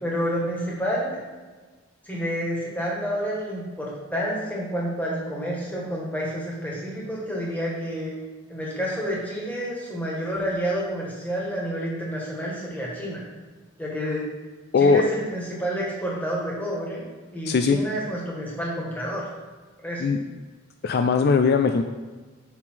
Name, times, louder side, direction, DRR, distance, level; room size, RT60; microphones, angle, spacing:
voice 1, 0.0-1.2 2.0-8.1 8.5-13.2 13.8-14.2 14.8-17.0 17.3-19.2 19.8-20.0, equal, 10° left, -5 dB, 1.6 m, -29 dB
voice 2, 14.7-15.0 17.5-17.8 20.0-20.2 20.8-21.8, left 5 dB, 50° left, 7 dB, 0.3 m, -19 dB
5.9 x 5.5 x 4.6 m, 1.3 s
head